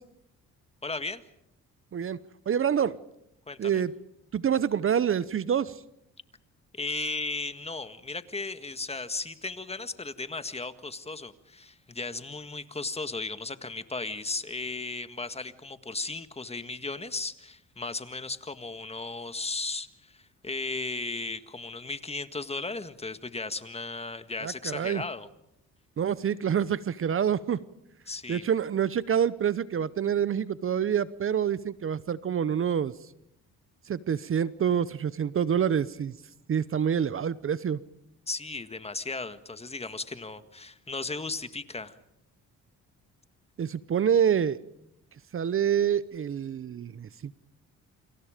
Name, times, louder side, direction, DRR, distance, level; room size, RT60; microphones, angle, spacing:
voice 1, 0.8-1.2 3.5-3.8 6.7-25.3 28.1-28.4 38.3-42.0, left 3 dB, 20° left, 11 dB, 1.7 m, -36 dB
voice 2, 2.5-3.0 3.6-3.9 4.3-5.8 24.4-25.0 26.0-27.6 28.3-32.9 33.9-36.2 36.5-37.8 43.6-44.6 45.3-47.3, right 8 dB, 45° right, 17 dB, 0.9 m, -27 dB
29.0 x 27.0 x 5.1 m, 0.79 s
cardioid pair, 90°, 30 cm